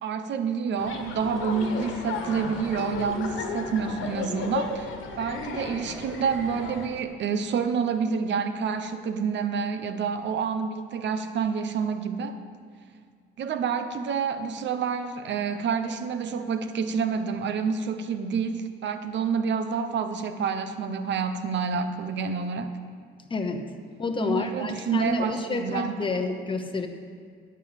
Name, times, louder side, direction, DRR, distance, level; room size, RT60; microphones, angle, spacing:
voice 1, 0.0-12.3 13.4-22.8 24.2-26.2, right 6 dB, 65° right, 10 dB, 0.8 m, -28 dB
sound 1, 0.8-6.9, left 4 dB, 85° left, 1.3 m, -34 dB
voice 2, 23.3-23.7 24.0-26.9, left 3 dB, 25° left, 5 dB, 1.0 m, -29 dB
10.5 x 5.5 x 8.0 m, 2.1 s
cardioid pair, 90°, 20 cm